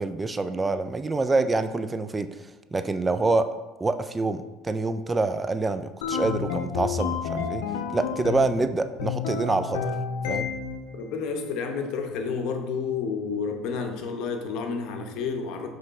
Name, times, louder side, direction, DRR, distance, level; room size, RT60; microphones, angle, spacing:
voice 1, 0.0-3.5 3.8-7.6 7.9-9.9 10.3-10.5, right 3 dB, 20° right, 11 dB, 0.3 m, -26 dB
sound 1, 6.0-8.6 9.0-10.9, left 6 dB, 90° left, 0.6 m, -30 dB
voice 2, 10.9-15.7, left 5 dB, 65° left, 4 dB, 0.9 m, -30 dB
6.5 x 3.2 x 4.7 m, 1.2 s
supercardioid pair, 105°, 0 cm